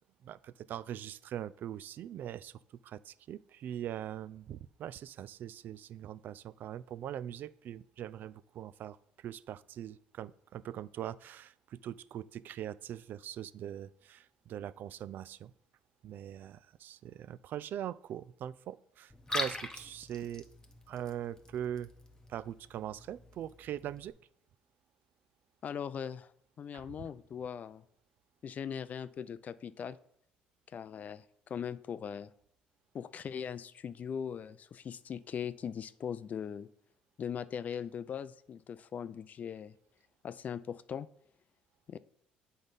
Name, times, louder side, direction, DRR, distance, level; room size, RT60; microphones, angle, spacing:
voice 1, 0.2-15.5 16.0-20.5 20.9-21.9 22.3-24.1 26.7-27.1, right 10 dB, 60° right, 18 dB, 0.3 m, -42 dB
Liquid, 19.1-24.1, left 2 dB, 15° left, 0.9 m, -43 dB
voice 2, 25.6-26.3 26.6-27.8 28.4-30.0 30.7-32.3 32.9-36.7 37.2-39.7 40.2-41.1 41.9-42.0, left 8 dB, 45° left, 15 dB, 0.4 m, -40 dB
8.0 x 3.9 x 5.3 m, 0.71 s
supercardioid pair, 75°, 4 cm